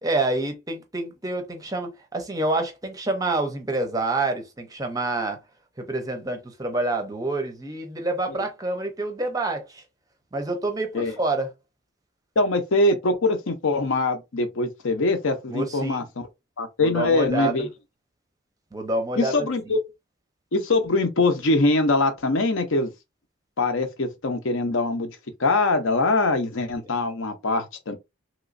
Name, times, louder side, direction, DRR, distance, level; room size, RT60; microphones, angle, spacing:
voice 1, 0.0-5.4 5.8-9.8 10.3-11.5 15.5-16.1 16.8-17.7 18.7-19.7, right 2 dB, 15° right, 0.5 m, -27 dB
voice 2, 12.4-16.3 16.6-17.7 19.2-19.8 20.5-22.9 23.6-25.1 25.4-28.0, left 2 dB, 70° left, 0.7 m, -23 dB
3.1 x 2.9 x 2.5 m
head